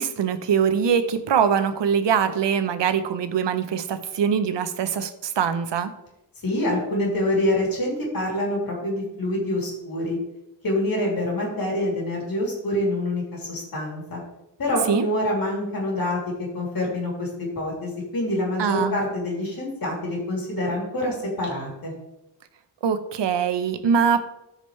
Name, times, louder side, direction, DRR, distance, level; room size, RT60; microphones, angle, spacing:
voice 1, 0.0-5.9 14.9-15.1 18.6-19.0 22.8-24.2, right 7 dB, 85° right, 10 dB, 0.8 m, -23 dB
voice 2, 6.4-10.2 10.6-14.2 14.6-16.2 16.5-21.9, left 1 dB, 55° left, -2 dB, 3.0 m, -26 dB
13.5 x 5.2 x 3.2 m, 0.89 s
wide cardioid pair, 165°, 42 cm